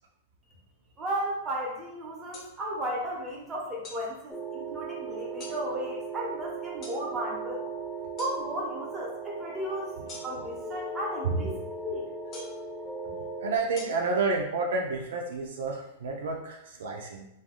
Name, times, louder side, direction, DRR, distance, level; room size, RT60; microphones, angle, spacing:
voice 1, 1.0-7.6 8.2-9.9 10.2-11.6 11.8-12.1, right 1 dB, 20° right, -2 dB, 0.9 m, -34 dB
sound 1, 2.3-2.5 3.8-4.0 5.4-5.6 6.8-7.0 8.2-8.4 10.1-10.5 12.3-12.6 13.8-13.9, left 2 dB, 35° left, 0.7 m, -43 dB
sound 2, 4.3-13.6, right 4 dB, 5° left, 0.3 m, -38 dB
voice 2, 11.2-11.6 13.4-17.3, right 3 dB, 80° right, 1 dB, 0.4 m, -30 dB
3.3 x 2.3 x 2.2 m, 0.82 s
hypercardioid pair, 125°, 0 cm